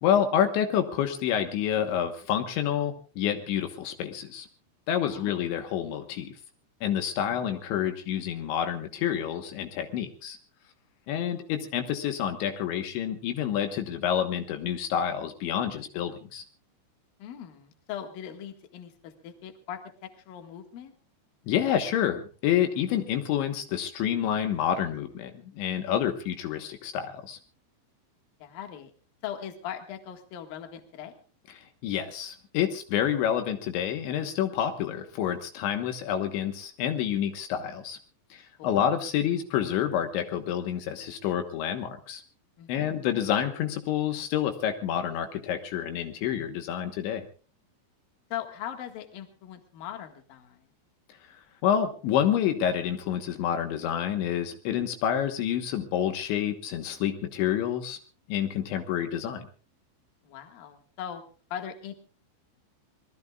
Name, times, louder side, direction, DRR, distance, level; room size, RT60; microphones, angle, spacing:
voice 1, 0.0-4.5 4.9-6.3 6.8-10.4 11.1-16.4 21.5-27.4 31.8-38.0 38.3-42.2 42.7-47.3 51.6-58.0 58.3-59.4, left 9 dB, 75° left, 6 dB, 3.6 m, -28 dB
voice 2, 5.1-5.4 17.2-20.9 28.4-28.9 29.2-31.2 38.6-38.9 42.6-43.0 48.3-50.6 60.2-61.2 61.5-61.9, left 9 dB, 60° left, 5 dB, 3.2 m, -40 dB
26.0 x 20.5 x 2.4 m, 0.38 s
omnidirectional pair, 5.4 m